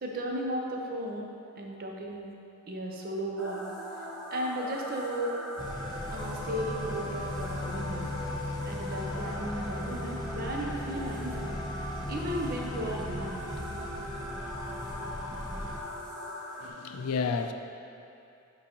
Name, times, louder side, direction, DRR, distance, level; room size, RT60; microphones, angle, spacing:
voice 1, 0.0-1.3 1.6-2.3 2.6-3.6 4.3-5.3 6.1-8.1 8.6-11.6 12.1-13.4, right 1 dB, 45° right, 0 dB, 0.6 m, -35 dB
sound 1, 3.4-16.7, equal, ahead, 0.9 m, -40 dB
sound 2, 5.6-15.8, left 2 dB, 20° left, 0.5 m, -38 dB
voice 2, 16.6-17.5, left 5 dB, 85° left, 7 dB, 0.4 m, -31 dB
8.6 x 4.7 x 2.9 m, 2.6 s
head